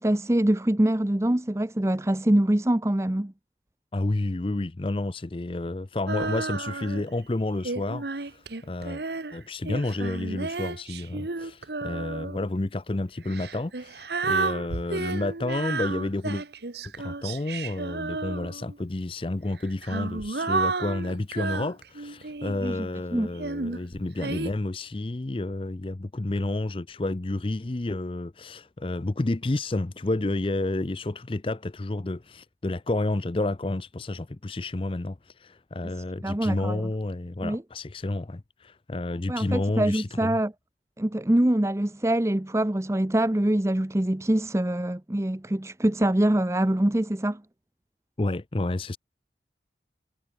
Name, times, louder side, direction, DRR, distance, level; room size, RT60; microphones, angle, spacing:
voice 1, 0.0-3.3 22.6-23.3 36.2-36.8 37.4-37.6 39.3-40.5 41.0-47.4, right 1 dB, 15° right, 0.6 m, -24 dB
voice 2, 3.9-9.0 9.3-16.4 17.0-40.4 48.2-49.0, left 2 dB, 30° left, 0.5 m, -30 dB
Female singing, 6.1-7.1 7.6-12.5 13.2-18.8 19.6-22.7 23.4-24.5, right 3 dB, 70° right, 1.2 m, -32 dB
head